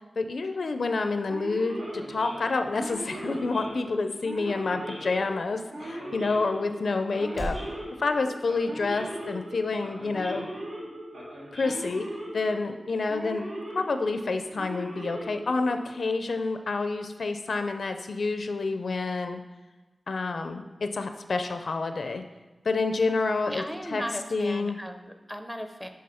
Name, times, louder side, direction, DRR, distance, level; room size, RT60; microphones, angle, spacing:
voice 1, 0.2-7.6 8.0-10.5 11.5-19.4 20.1-22.2 22.6-23.6 23.9-24.0 24.3-24.8, left 3 dB, 70° left, 7 dB, 0.4 m, -28 dB
Male speech man speaking / Siren, 1.3-16.0, right 1 dB, 90° right, 1.6 m, -39 dB
sound 1, 1.5-7.7, equal, 60° right, 2.0 m, -45 dB
voice 2, 23.5-25.9, equal, 5° right, 6 dB, 0.5 m, -37 dB
7.5 x 3.6 x 4.3 m, 1.2 s
wide cardioid pair, 100°, 0 cm